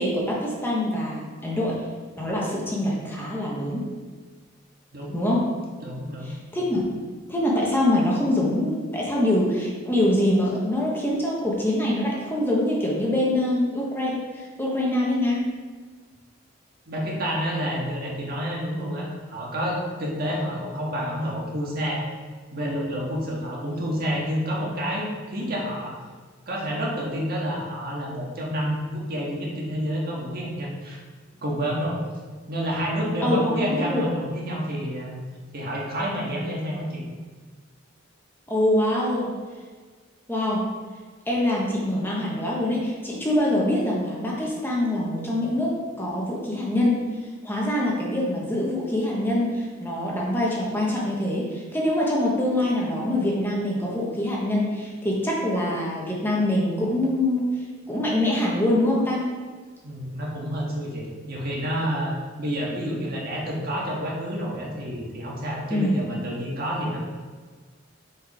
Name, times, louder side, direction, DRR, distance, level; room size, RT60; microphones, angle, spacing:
voice 1, 0.0-1.8 2.2-3.9 5.1-5.5 6.2-6.9 7.3-15.5 33.2-34.0 38.5-39.3 40.3-40.6 41.3-47.1 47.4-57.5 57.9-59.3 65.7-66.0, left 1 dB, 10° left, -4 dB, 1.3 m, -24 dB
voice 2, 5.8-6.4 16.9-22.0 22.5-25.9 26.5-31.0 31.4-32.0 32.5-35.2 35.5-37.0 59.8-67.0, equal, 50° right, -3 dB, 1.7 m, -29 dB
6.3 x 5.4 x 4.9 m, 1.5 s
head